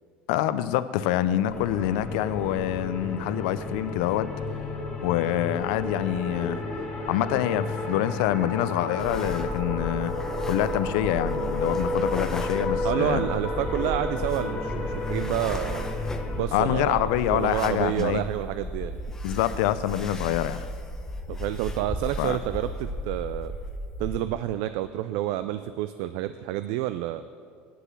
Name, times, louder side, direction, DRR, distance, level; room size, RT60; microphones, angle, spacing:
voice 1, 0.3-4.3 5.0-6.6 7.1-10.1 10.5-13.2 16.5-18.2 19.2-20.6 22.2-22.4, left 12 dB, 85° left, 14 dB, 0.4 m, -26 dB
sound 1, 1.5-16.4, left 2 dB, 30° left, 1.9 m, -32 dB
sound 2, 6.3-12.4, equal, 50° right, 1.8 m, -49 dB
sound 3, 9.0-24.2, left 1 dB, 10° left, 0.7 m, -35 dB
voice 2, 12.8-15.9 16.4-19.0 21.3-23.5 24.0-27.2, right 13 dB, 80° right, 11 dB, 0.3 m, -29 dB
9.4 x 6.9 x 7.3 m, 2.2 s
cardioid pair, 135°, 4 cm